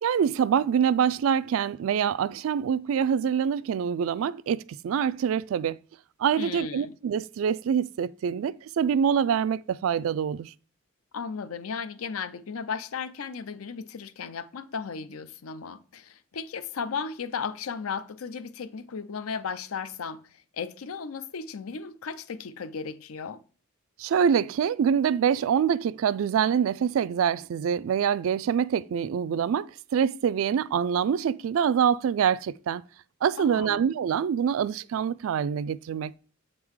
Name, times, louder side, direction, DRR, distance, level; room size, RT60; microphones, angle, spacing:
voice 1, 0.0-5.8 6.2-10.5 24.0-32.8 33.2-36.1, right 7 dB, 75° right, 0.3 m, -25 dB
voice 2, 6.4-6.9 11.1-23.4 33.4-33.9, left 5 dB, 85° left, 0.5 m, -35 dB
7.7 x 3.8 x 4.7 m
head